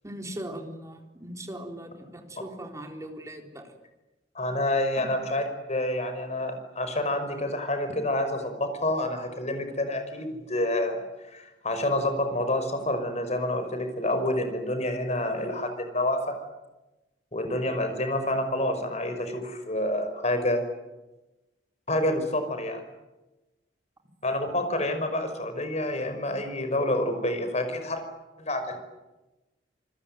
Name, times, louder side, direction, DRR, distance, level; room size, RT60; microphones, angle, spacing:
voice 1, 0.0-3.7 5.0-5.1, right 1 dB, 20° right, 3 dB, 4.0 m, -39 dB
voice 2, 4.3-5.4 5.7-16.4 17.3-20.6 21.9-22.8 24.2-28.0 28.4-28.8, left 1 dB, 40° left, 8 dB, 5.6 m, -28 dB
28.0 x 21.0 x 9.4 m, 1.0 s
head